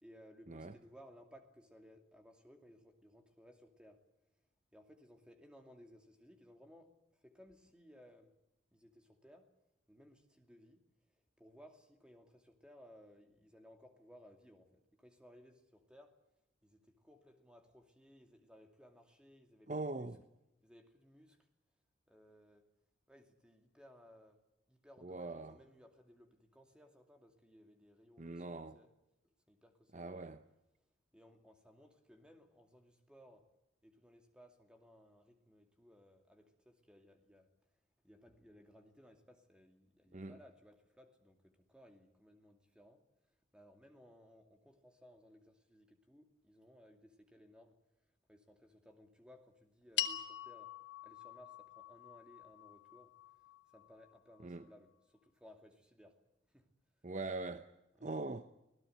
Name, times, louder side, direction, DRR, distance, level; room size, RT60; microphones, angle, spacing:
voice 1, 0.0-4.0 4.7-8.4 8.7-9.5 9.9-16.2 16.6-20.1 20.6-21.5 22.1-22.7 23.1-24.4 24.7-28.9 29.2-30.3 31.1-33.5 33.8-37.7 38.0-47.8 48.3-50.7 51.0-53.4 53.7-56.7 58.0-58.1, equal, 5° right, 2.5 m, -61 dB
voice 2, 19.7-20.2 25.0-25.6 28.2-28.8 29.9-30.4 40.1-40.4 54.4-54.6 57.0-57.7 58.0-58.5, right 2 dB, 35° right, 0.7 m, -42 dB
sound 1, 50.0-54.4, left 11 dB, 60° left, 1.3 m, -44 dB
26.0 x 17.5 x 8.0 m
head